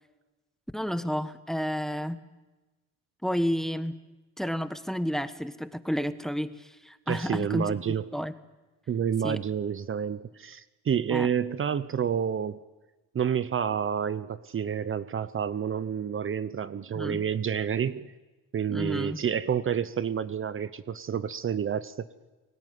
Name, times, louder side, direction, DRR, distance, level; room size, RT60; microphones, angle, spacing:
voice 1, 0.7-2.2 3.2-4.0 4.4-7.8 8.1-8.3 9.2-9.4 11.1-11.3 16.9-17.2 18.7-19.2, equal, ahead, 11 dB, 1.4 m, -31 dB
voice 2, 7.1-8.1 8.9-12.6 13.1-18.1 18.5-22.1, right 8 dB, 45° right, 14 dB, 0.9 m, -29 dB
28.5 x 18.0 x 9.4 m, 1.2 s
cardioid pair, 90°, 30 cm